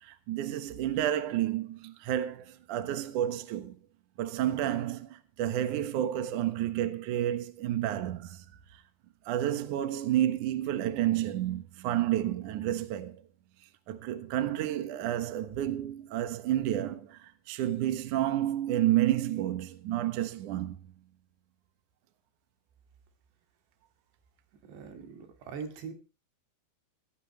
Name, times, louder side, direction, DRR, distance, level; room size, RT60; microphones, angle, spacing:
voice 1, 0.0-3.7 4.2-8.4 9.3-13.2 13.9-20.8, right 12 dB, 60° right, 2.3 m, -30 dB
voice 2, 24.6-25.9, right 6 dB, 80° right, 4.6 m, -42 dB
17.5 x 16.0 x 3.2 m
omnidirectional pair, 4.8 m